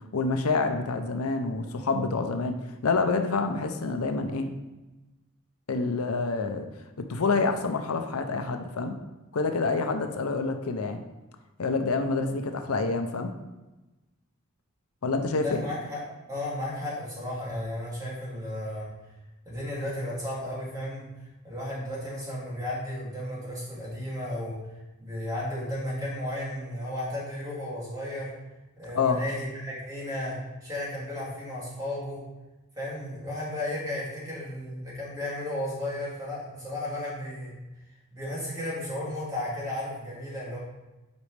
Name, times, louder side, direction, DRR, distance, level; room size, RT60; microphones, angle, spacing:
voice 1, 0.1-2.6 2.8-4.5 5.7-6.7 7.1-9.0 9.3-11.0 11.6-13.3 15.0-15.6 28.9-29.2, left 4 dB, 85° left, 6 dB, 0.7 m, -27 dB
voice 2, 15.4-16.0 16.3-18.9 19.5-21.1 21.4-24.6 25.0-28.3 28.8-32.2 32.8-37.5 38.1-40.6, left 1 dB, 15° right, -7 dB, 2.6 m, -34 dB
8.0 x 5.3 x 3.4 m, 1.1 s
head